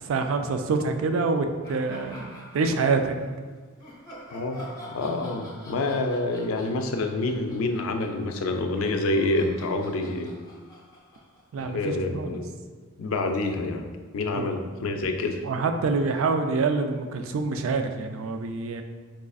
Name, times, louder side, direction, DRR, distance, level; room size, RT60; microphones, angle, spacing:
voice 1, 0.0-3.2 11.5-12.4 14.3-14.4 15.4-18.8, right 4 dB, 70° right, 6 dB, 0.3 m, -26 dB
sound 1, 1.6-3.3 3.8-12.1, equal, 15° left, 0.6 m, -46 dB
voice 2, 4.3-10.4 11.6-12.6 13.0-13.9 14.1-15.4, left 2 dB, 75° left, 5 dB, 0.4 m, -27 dB
4.7 x 2.4 x 2.3 m, 1.5 s
head